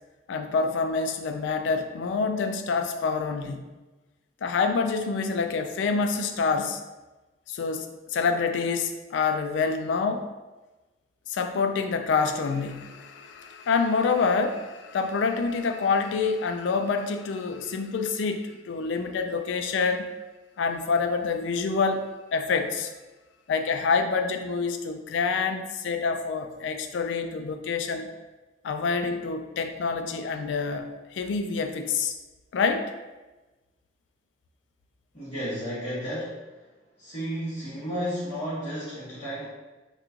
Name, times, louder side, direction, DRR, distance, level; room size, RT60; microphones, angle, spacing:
voice 1, 0.3-3.6 4.4-6.8 7.5-10.3 11.3-20.1 20.6-22.1 22.3-22.9 23.5-28.1 28.6-32.1 32.5-32.9, left 4 dB, 85° left, 7 dB, 0.3 m, -27 dB
voice 2, 35.1-36.5 37.0-39.5, equal, 35° left, -13 dB, 1.0 m, -32 dB
3.0 x 2.2 x 3.6 m, 1.2 s
head